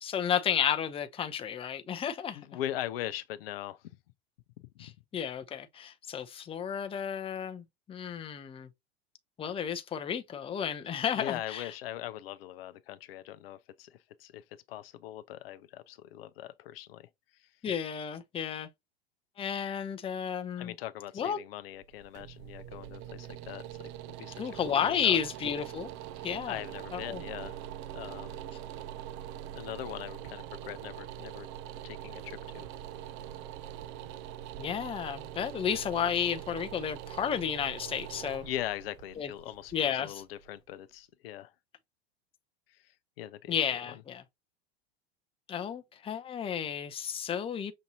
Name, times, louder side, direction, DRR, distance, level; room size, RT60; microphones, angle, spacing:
voice 1, 0.0-2.4 4.8-8.7 9.4-11.7 17.6-18.7 19.4-20.7 21.2-21.4 24.4-25.9 26.2-26.6 26.9-27.2 34.6-38.4 39.2-39.3 39.7-40.2 43.5-44.2 45.5-47.7, left 8 dB, 15° left, 0.6 m, -32 dB
voice 2, 2.3-3.8 4.8-4.9 11.1-17.1 17.4-17.5 20.6-23.9 24.2-24.4 24.7-25.2 26.1-27.6 27.9-28.4 29.5-31.5 31.8-32.7 38.4-41.5 42.7-42.8 43.2-43.6, left 13 dB, 65° left, 0.6 m, -41 dB
sound 1, 21.8-40.7, right 11 dB, 40° right, 0.4 m, -43 dB
6.2 x 2.6 x 2.7 m
hypercardioid pair, 90°, 32 cm